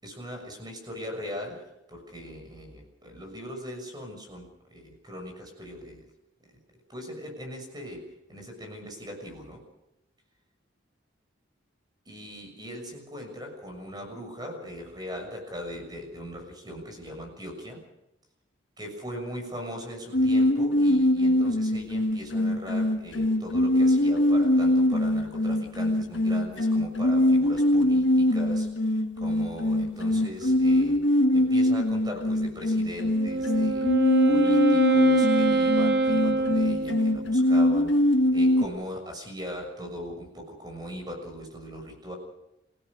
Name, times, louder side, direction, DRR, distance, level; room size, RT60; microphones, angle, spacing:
voice 1, 0.0-1.6 1.9-6.0 6.9-8.0 8.3-9.6 12.1-17.8 18.8-33.9 34.2-42.2, equal, 20° right, 3 dB, 6.6 m, -40 dB
sound 1, 20.1-38.7, left 1 dB, 70° left, 1.6 m, -23 dB
Wind instrument woodwind instrument, 33.0-37.4, right 2 dB, 60° right, 1.5 m, -25 dB
27.5 x 17.0 x 6.7 m, 0.86 s
head